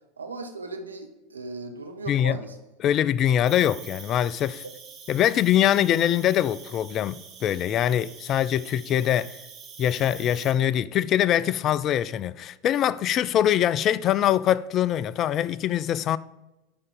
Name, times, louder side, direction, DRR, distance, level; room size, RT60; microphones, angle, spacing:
voice 1, 0.2-2.6, right 3 dB, 90° right, 0.9 m, -37 dB
voice 2, 2.8-4.6 5.1-9.4 9.8-16.2, left 11 dB, 40° left, 0.3 m, -23 dB
Cricket, 3.5-10.5, right 6 dB, 35° right, 1.9 m, -45 dB
10.5 x 4.0 x 3.8 m
hypercardioid pair, 85°, 0 cm